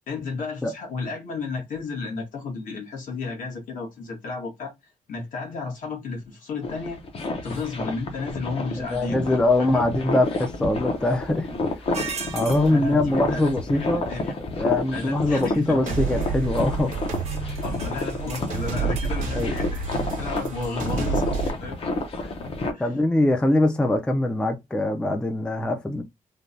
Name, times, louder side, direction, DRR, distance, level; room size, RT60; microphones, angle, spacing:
voice 1, 0.1-7.0 7.4-9.9 12.7-14.3 14.9-16.1 17.6-19.8 20.1-21.8 22.7-22.9, left 4 dB, 75° left, 1.3 m, -33 dB
sound 1, 6.6-22.7, left 2 dB, 45° left, 0.6 m, -30 dB
voice 2, 8.8-11.5 12.3-14.1 14.6-17.0 17.4-17.6 19.4-19.5 22.8-26.0, left 2 dB, 5° left, 0.3 m, -23 dB
sound 2, 11.9-12.7 15.3-15.6 16.2-16.3 16.5-16.7 17.2-19.2, right 6 dB, 50° right, 0.5 m, -37 dB
sound 3, 15.9-21.5, right 5 dB, 70° right, 0.9 m, -29 dB
3.2 x 2.1 x 2.5 m
wide cardioid pair, 175°, 14 cm